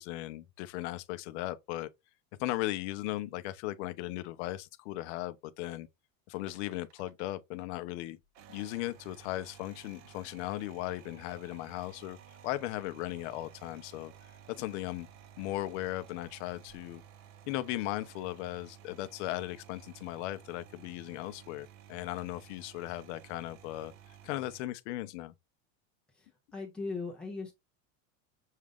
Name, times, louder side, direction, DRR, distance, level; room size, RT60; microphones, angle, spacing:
voice 1, 0.0-1.9 2.4-5.9 6.3-8.2 8.5-12.2 12.4-14.1 14.5-15.1 15.4-17.0 17.5-23.9 24.2-25.3, left 16 dB, 50° left, 0.6 m, -37 dB
sound 1, 6.4-7.6 8.2-24.6, right 9 dB, 40° right, 0.7 m, -55 dB
voice 2, 26.2-27.5, left 3 dB, ahead, 0.3 m, -39 dB
6.4 x 2.4 x 3.4 m
supercardioid pair, 175°, 44 cm